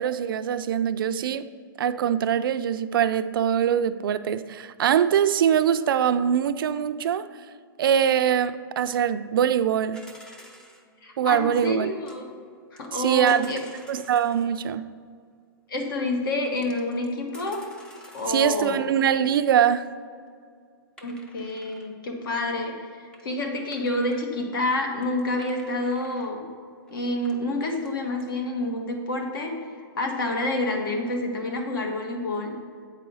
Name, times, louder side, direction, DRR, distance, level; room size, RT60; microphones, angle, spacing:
voice 1, 0.0-1.5 1.8-7.3 7.8-10.0 11.2-11.9 13.0-13.5 13.9-14.9 18.3-19.9, right 9 dB, 65° right, 0.4 m, -23 dB
sound 1, 9.9-10.8 12.1-12.2 12.8-14.5 15.8-15.9 16.6-18.6 21.0-21.9 22.7-22.8 23.1-23.2 23.7-24.3 24.7-24.8 25.0-26.3 26.9-27.0 27.2-27.9 28.2-28.3, equal, 5° left, 0.5 m, -50 dB
voice 2, 11.0-12.3 12.7-13.6 15.7-17.7 18.1-18.9 21.0-26.4 26.9-29.6 29.9-32.6, left 2 dB, 65° left, 1.5 m, -28 dB
8.4 x 4.9 x 5.5 m
hypercardioid pair, 160°, 12 cm